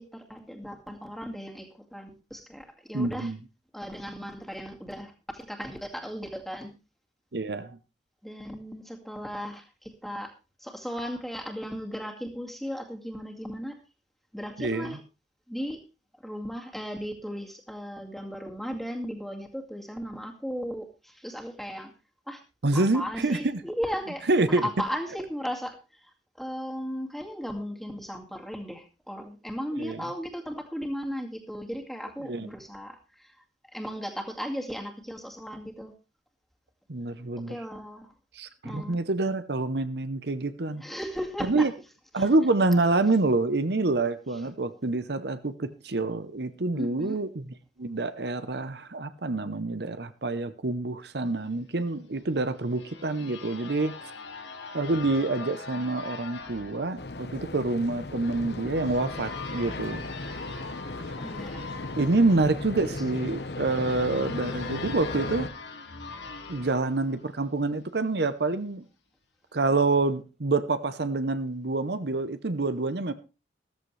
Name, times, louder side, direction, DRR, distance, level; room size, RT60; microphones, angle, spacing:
voice 1, 0.0-3.3 3.7-6.7 8.2-10.3 10.6-13.8 14.3-15.0 15.5-15.8 16.2-21.9 22.3-22.4 22.7-33.4 33.7-35.9 37.5-38.1 38.6-39.0 40.8-41.7 42.2-42.3 46.7-47.2 61.2-61.6, equal, ahead, 2.1 m, -36 dB
voice 2, 2.9-3.4 7.3-7.8 14.6-15.0 22.6-23.6 24.3-24.7 29.8-30.0 32.2-32.5 36.9-37.5 38.4-40.8 41.4-41.7 42.1-47.4 47.8-54.1 54.7-60.1 62.0-65.5 66.5-68.8 69.5-73.1, right 2 dB, 65° right, 0.9 m, -27 dB
sound 1, 52.2-67.8, left 4 dB, 85° left, 2.4 m, -43 dB
sound 2, 57.0-65.5, left 2 dB, 65° left, 1.1 m, -36 dB
14.5 x 14.0 x 3.3 m
head